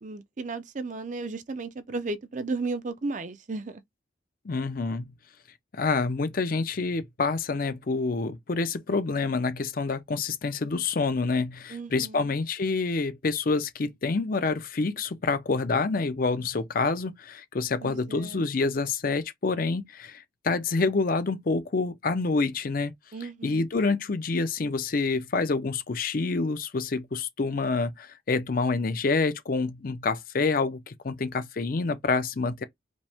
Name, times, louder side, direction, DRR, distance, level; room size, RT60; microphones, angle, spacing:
voice 1, 0.0-3.8 11.7-12.3 17.8-18.5 23.1-23.7, right 3 dB, 40° right, 0.5 m, -34 dB
voice 2, 4.5-5.1 5.7-22.9 23.4-32.6, left 4 dB, 45° left, 0.5 m, -27 dB
5.1 x 2.1 x 3.4 m
head